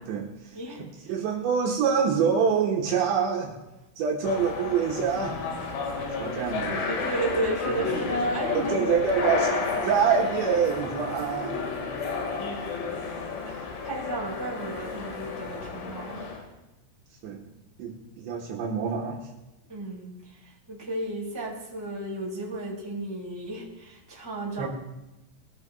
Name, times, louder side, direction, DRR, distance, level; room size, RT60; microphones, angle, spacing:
voice 1, 0.1-3.6 4.0-5.4 6.2-6.8 8.5-11.6 17.2-17.4 17.8-19.3 24.6-24.7, right 6 dB, 75° right, -2 dB, 3.3 m, -26 dB
sound 1, 4.2-16.4, left 4 dB, 80° left, 4.4 m, -31 dB
voice 2, 6.9-8.7 9.2-9.3 9.7-9.9 13.4-16.3 19.7-20.2 20.4-24.7, right 2 dB, 5° right, -6 dB, 4.1 m, -33 dB
20.5 x 14.0 x 2.3 m, 0.97 s
omnidirectional pair, 5.5 m